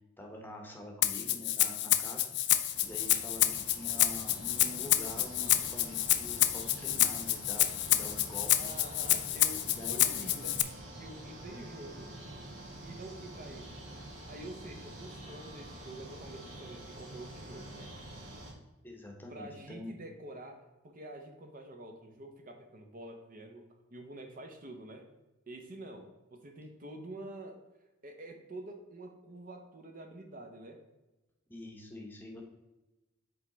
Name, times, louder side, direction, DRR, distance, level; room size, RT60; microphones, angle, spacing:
voice 1, 0.2-2.3 2.6-8.7 9.6-10.5 18.8-19.9 31.5-32.4, left 1 dB, 10° left, 1 dB, 0.9 m, -46 dB
Rattle (instrument), 1.0-10.6, left 13 dB, 55° left, 0.4 m, -28 dB
sound 1, 2.7-18.5, right 1 dB, 80° right, 1.8 m, -47 dB
voice 2, 8.6-10.6 11.0-12.1 12.8-13.8 14.3-17.9 19.3-23.6 23.9-25.1 25.5-27.6 28.0-30.8, right 1 dB, 40° right, 4 dB, 0.7 m, -47 dB
7.8 x 3.3 x 3.9 m, 1.0 s
head